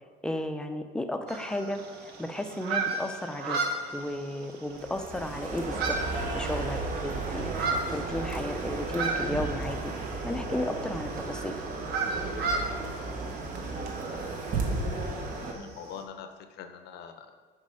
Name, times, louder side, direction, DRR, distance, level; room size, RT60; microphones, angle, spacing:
voice 1, 0.2-1.8 2.2-3.6 3.9-6.0 6.3-11.5, left 1 dB, 5° left, 6 dB, 0.6 m, -34 dB
sound 1, 1.3-16.0, right 3 dB, 75° right, 1.1 m, -36 dB
sound 2, 4.7-15.5, right 3 dB, 50° right, 1.2 m, -34 dB
voice 2, 15.5-17.4, left 7 dB, 75° left, 7 dB, 0.7 m, -44 dB
6.5 x 5.3 x 4.8 m, 1.5 s
cardioid pair, 110°, 17 cm